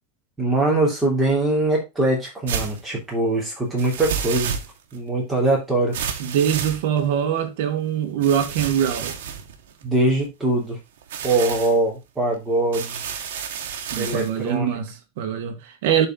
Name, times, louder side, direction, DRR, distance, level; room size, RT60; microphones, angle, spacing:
voice 1, 0.4-4.6 4.9-6.0 9.8-10.8 11.2-13.1 14.0-14.8, right 2 dB, 5° right, 3.2 m, -22 dB
sound 1, 2.5-2.8 3.8-5.0 5.9-7.2 8.2-10.3 11.0-11.8 12.7-14.3, right 8 dB, 80° right, 1.5 m, -31 dB
voice 2, 6.2-9.2 13.9-16.1, right 9 dB, 55° right, 1.6 m, -23 dB
11.0 x 4.3 x 3.8 m
supercardioid pair, 170°, 0 cm